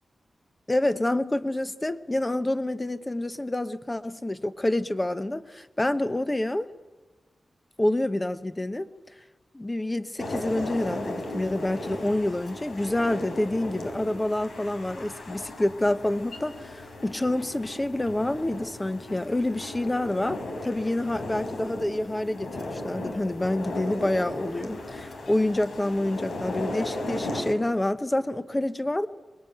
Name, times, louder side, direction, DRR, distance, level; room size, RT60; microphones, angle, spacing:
voice 1, 0.7-6.7 7.8-8.9 9.5-29.1, left 1 dB, 15° left, 0.9 m, -27 dB
sound 1, 10.2-27.5, left 1 dB, 85° left, 3.9 m, -36 dB
23.5 x 21.5 x 9.2 m
wide cardioid pair, 155°, 0 cm